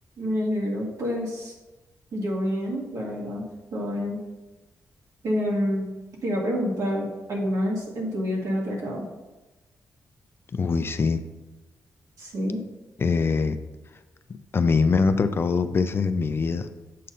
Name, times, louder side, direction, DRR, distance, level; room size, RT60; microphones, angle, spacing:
voice 1, 0.2-1.5 2.1-4.2 5.2-5.8 6.2-9.1 12.2-12.6, equal, 65° right, -2 dB, 1.7 m, -28 dB
voice 2, 10.5-11.2 13.0-13.6 14.5-16.7, left 4 dB, 40° left, 10 dB, 0.4 m, -23 dB
7.4 x 2.7 x 5.4 m, 1.1 s
cardioid pair, 80°, 6 cm